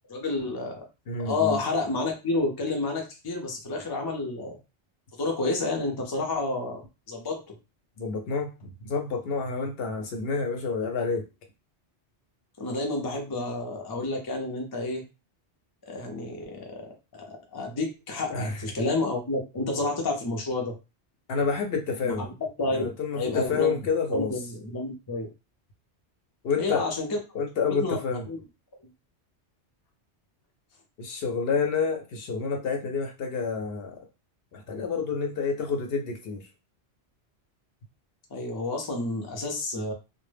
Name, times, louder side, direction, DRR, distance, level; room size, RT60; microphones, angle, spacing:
voice 1, 0.1-0.8 1.2-4.6 5.2-6.8 7.1-7.6 12.6-15.0 15.8-20.7 22.0-22.3 22.6-22.9 23.2-23.8 24.1-25.3 26.6-27.2 27.8-28.0 28.3-28.4 38.3-39.9, left 2 dB, 35° left, 1 dB, 0.4 m, -30 dB
voice 2, 1.1-1.6 8.0-11.3 18.3-18.6 21.3-22.3 22.7-24.3 26.4-26.9 27.3-28.3 31.0-34.0 34.5-36.5, left 5 dB, 65° left, 3 dB, 0.8 m, -29 dB
2.1 x 2.0 x 3.2 m, 0.29 s
omnidirectional pair, 1.2 m